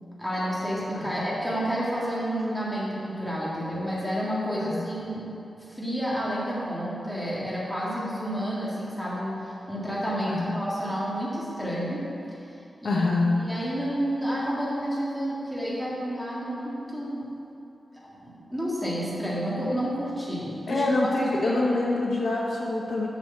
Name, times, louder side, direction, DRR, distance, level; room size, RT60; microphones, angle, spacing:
voice 1, 0.2-5.2 5.7-12.0 12.8-13.0 13.4-17.2 17.9-21.8, equal, ahead, -7 dB, 1.8 m, -30 dB
voice 2, 10.3-10.6 12.8-13.4 20.7-23.1, left 2 dB, 70° left, -3 dB, 1.0 m, -25 dB
7.8 x 4.9 x 6.7 m, 2.8 s
wide cardioid pair, 170°, 0 cm